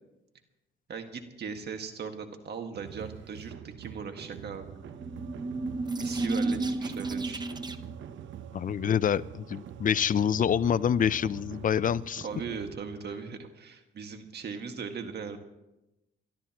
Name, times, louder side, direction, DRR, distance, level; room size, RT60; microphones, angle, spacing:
voice 1, 0.9-4.8 6.0-7.4 12.2-15.4, right 5 dB, 55° right, 6 dB, 1.8 m, -39 dB
sound 1, 2.7-12.7, right 9 dB, 70° right, 0.9 m, -45 dB
sound 2, 4.8-8.0, right 2 dB, 20° right, 0.9 m, -32 dB
voice 2, 8.5-12.3, left 8 dB, 40° left, 17 dB, 0.5 m, -26 dB
28.5 x 13.0 x 3.0 m, 0.96 s
cardioid pair, 90°, 20 cm